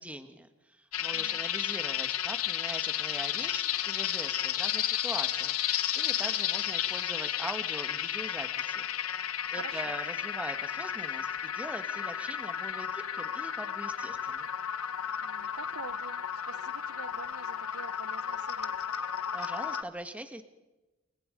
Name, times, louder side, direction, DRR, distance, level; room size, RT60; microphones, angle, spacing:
voice 1, 0.0-5.6 5.9-8.8 9.5-14.5 19.3-20.4, right 1 dB, 5° right, 8 dB, 1.6 m, -42 dB
sound 1, 0.9-19.8, left 10 dB, 85° left, 1.2 m, -33 dB
voice 2, 9.6-10.0 15.2-18.7, right 5 dB, 90° right, 15 dB, 1.0 m, -46 dB
29.5 x 23.5 x 5.3 m, 1.1 s
head